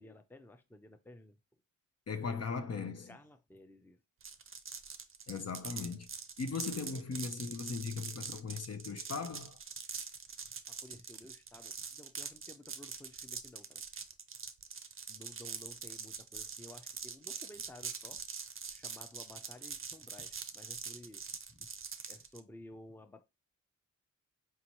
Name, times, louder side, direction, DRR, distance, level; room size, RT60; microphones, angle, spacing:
voice 1, 0.0-1.4 2.2-2.4 3.1-4.0 9.8-10.0 10.7-13.8 15.1-18.2 18.7-21.7 22.1-23.3, left 1 dB, 5° left, 0.6 m, -54 dB
voice 2, 2.1-3.2 5.3-6.1 6.4-9.6, left 5 dB, 50° left, 0.6 m, -38 dB
sound 1, 4.2-22.4, right 6 dB, 40° right, 0.5 m, -44 dB
4.5 x 2.8 x 2.9 m
cardioid pair, 55°, 33 cm